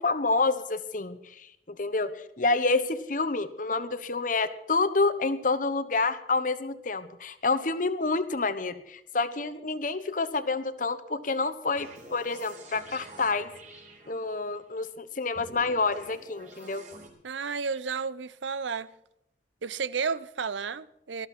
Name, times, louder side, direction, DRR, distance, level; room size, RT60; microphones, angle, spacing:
voice 1, 0.0-2.1 2.4-13.5 14.1-16.8, left 3 dB, 45° left, 1.1 m, -28 dB
sound 1, 11.8-14.6 15.3-17.1, right 2 dB, 45° right, 4.1 m, -48 dB
voice 2, 17.2-18.9 19.6-21.3, right 5 dB, 85° right, 0.7 m, -32 dB
19.0 x 14.0 x 4.3 m
head